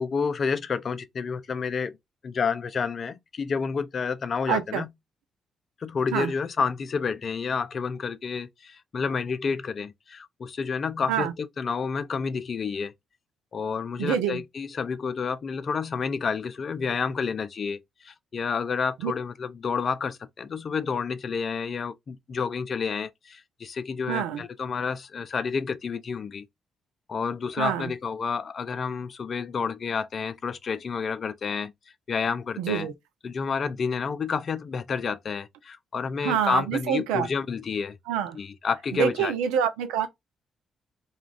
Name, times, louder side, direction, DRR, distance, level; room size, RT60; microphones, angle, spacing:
voice 1, 0.0-2.0 2.2-4.9 5.8-12.9 13.5-26.4 27.1-31.7 32.1-32.9 33.2-38.0 38.3-39.3, left 5 dB, 50° left, 0.4 m, -30 dB
voice 2, 4.5-4.8 6.1-6.3 11.1-11.3 14.0-14.4 19.0-19.1 24.1-24.4 27.6-27.9 32.6-32.9 36.2-37.3 38.1-38.4 38.9-40.1, right 9 dB, 75° right, 0.4 m, -26 dB
2.3 x 2.3 x 3.2 m
hypercardioid pair, 45°, 0 cm